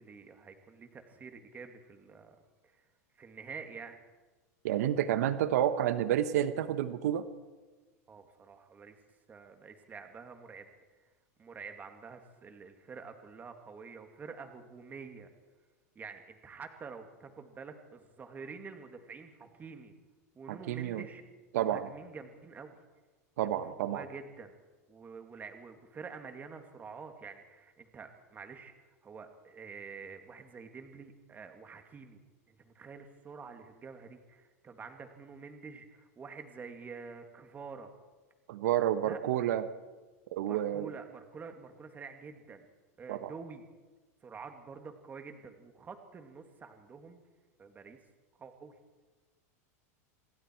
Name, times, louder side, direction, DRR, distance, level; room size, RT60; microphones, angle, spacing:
voice 1, 0.0-2.4 2.6-2.9 3.1-4.0 8.1-9.0 9.3-10.7 11.0-11.1 11.4-15.3 16.0-19.9 20.3-21.2 21.5-22.7 23.5-24.5 24.9-32.2 32.5-37.9 39.0-39.2 40.4-42.7 43.0-43.6 44.2-47.2 47.6-48.0 48.4-48.8, right 5 dB, 20° right, 6 dB, 2.4 m, -48 dB
voice 2, 4.6-7.2 20.5-21.0 21.5-21.9 23.4-24.0 38.5-39.6 40.3-40.9 43.1-43.3, right 11 dB, 75° right, 11 dB, 1.2 m, -30 dB
27.0 x 21.5 x 4.7 m, 1.3 s
supercardioid pair, 135°, 9 cm